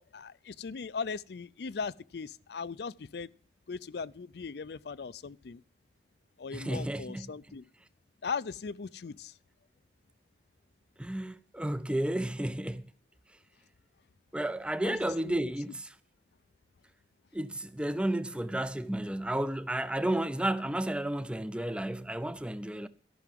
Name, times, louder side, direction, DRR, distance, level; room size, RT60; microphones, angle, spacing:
voice 1, 0.0-3.3 3.7-5.6 6.4-7.7 8.2-9.3 14.8-15.4, left 5 dB, 65° left, 0.4 m, -39 dB
voice 2, 6.5-7.3 11.0-12.9 14.3-15.9 17.3-22.9, right 1 dB, 5° right, 0.5 m, -32 dB
14.0 x 6.0 x 7.5 m
head